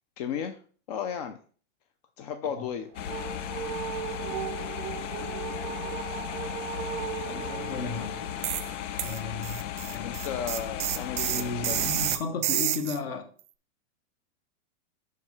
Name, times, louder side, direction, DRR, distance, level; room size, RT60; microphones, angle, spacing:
voice 1, 0.2-0.6 0.9-1.4 2.2-2.9 10.0-11.9, left 8 dB, 35° left, 0.4 m, -34 dB
sound 1, 2.7-8.8, right 10 dB, 25° right, 0.5 m, -37 dB
sound 2, 2.9-12.2, left 10 dB, 75° left, 0.7 m, -36 dB
voice 2, 7.2-8.2 8.9-9.6 9.9-10.2 11.3-13.2, left 4 dB, 50° left, 1.4 m, -34 dB
sound 3, 8.4-8.7 9.0-13.0, right 14 dB, 70° right, 0.5 m, -29 dB
5.5 x 4.7 x 4.7 m
supercardioid pair, 165°, 37 cm